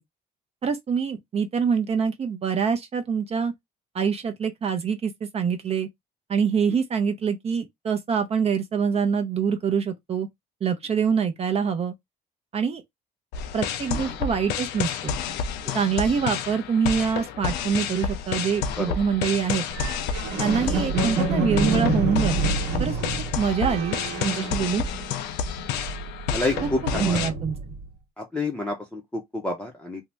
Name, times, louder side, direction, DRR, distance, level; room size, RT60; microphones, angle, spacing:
voice 1, 0.6-3.5 3.9-5.9 6.3-10.3 10.6-11.9 12.5-12.8 13.5-15.1 15.7-19.7 20.4-22.5 22.8-23.0 23.4-24.8 26.6-27.6, right 6 dB, 40° right, 0.6 m, -25 dB
sound 1, 13.3-27.3, left 7 dB, 90° left, 0.5 m, -30 dB
sound 2, 19.7-25.3 25.6-27.9, right 2 dB, 80° right, 1.1 m, -28 dB
voice 2, 26.3-27.2 28.2-30.0, left 2 dB, 5° left, 0.6 m, -29 dB
2.7 x 2.1 x 3.3 m
cardioid pair, 110°, 17 cm